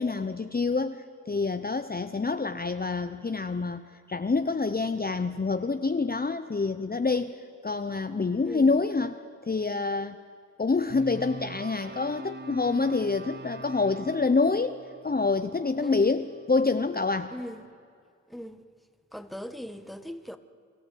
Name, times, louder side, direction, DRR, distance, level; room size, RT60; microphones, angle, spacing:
voice 1, 0.0-7.4 7.6-10.2 10.6-14.8 15.0-17.3, left 4 dB, 30° left, 0.8 m, -27 dB
voice 2, 8.4-8.8 15.8-16.1 17.3-17.7 18.3-18.7 19.1-20.4, equal, ahead, 1.4 m, -40 dB
sound 1, 10.9-17.1, right 3 dB, 35° right, 0.8 m, -44 dB
25.0 x 13.5 x 8.5 m
cardioid pair, 45°, 31 cm